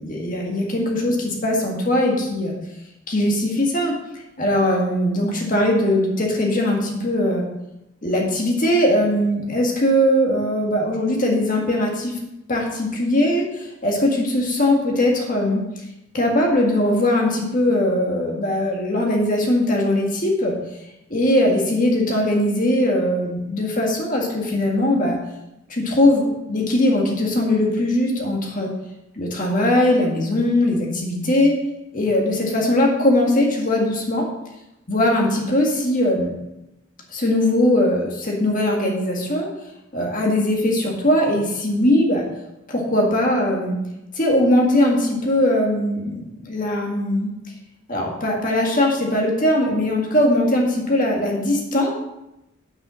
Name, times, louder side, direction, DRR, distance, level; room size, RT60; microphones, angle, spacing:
voice 1, 0.0-2.6 3.1-4.0 4.4-7.5 8.0-12.2 12.5-15.6 16.1-20.6 21.1-25.2 25.7-28.7 29.2-31.6 31.9-34.3 34.9-36.3 37.1-39.5 39.9-42.2 42.7-43.8 44.1-47.3 47.9-51.9, left 1 dB, 40° left, 0 dB, 1.8 m, -20 dB
8.6 x 5.7 x 6.2 m, 0.93 s
head